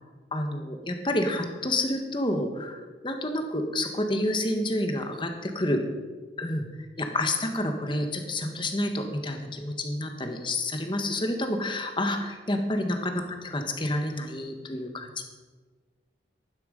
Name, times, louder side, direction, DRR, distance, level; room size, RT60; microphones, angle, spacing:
voice 1, 0.3-5.8 6.4-6.6 7.0-13.2 13.5-15.3, left 1 dB, 30° left, 5 dB, 1.6 m, -29 dB
14.0 x 12.5 x 5.3 m, 1.4 s
head